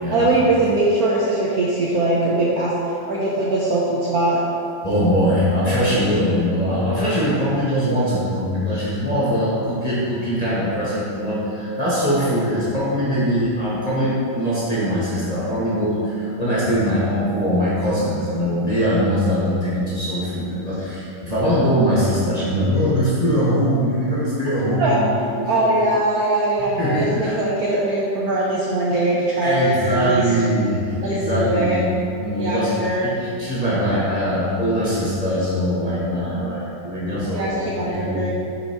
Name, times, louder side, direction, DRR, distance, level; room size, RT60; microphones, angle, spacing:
voice 1, 0.1-4.4 7.4-7.6 24.8-25.0 25.5-30.2 31.0-31.9 32.4-33.1 37.3-38.3, right 2 dB, 60° right, -5 dB, 1.0 m, -21 dB
voice 2, 4.8-25.8 26.8-27.4 29.4-31.8 32.1-32.8 33.0-38.2, equal, 25° left, -9 dB, 1.1 m, -21 dB
6.7 x 4.4 x 4.4 m, 2.6 s
omnidirectional pair, 2.2 m